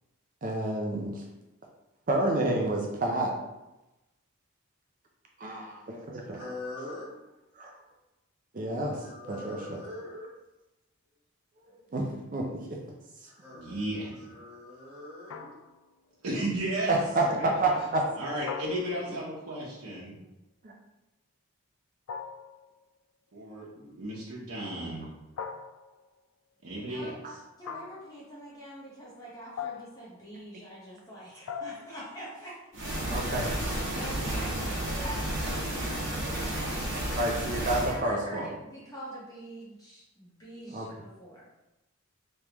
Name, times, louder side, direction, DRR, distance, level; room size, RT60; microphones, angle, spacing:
voice 1, 0.4-1.2 2.1-3.4 5.4-6.4 7.6-7.7 8.5-9.0 9.3-9.8 11.7-12.8 16.9-18.0 20.6-20.7 27.2-27.3 33.1-33.5 37.1-38.4 40.7-40.9, right 2 dB, 35° right, 0 dB, 0.4 m, -29 dB
voice 2, 5.9-7.2 8.8-10.4 13.2-15.6 17.7-17.9 19.1-19.2, left 2 dB, 20° right, -9 dB, 1.4 m, -43 dB
voice 3, 13.5-14.3 16.2-17.0 17.4-17.5 18.2-20.2 23.3-25.1 26.6-27.2, right 1 dB, 85° right, -7 dB, 0.9 m, -34 dB
sound 1, 15.3-15.9 18.5-19.3 22.1-22.7 25.4-26.1 27.6-28.2 29.6-30.1 31.5-32.1, left 7 dB, 75° left, 0.3 m, -40 dB
voice 4, 27.6-32.6 33.6-41.5, equal, 15° left, -7 dB, 1.0 m, -44 dB
sound 2, 32.7-38.0, right 1 dB, 55° right, 0.9 m, -32 dB
3.4 x 3.1 x 2.9 m, 0.97 s
head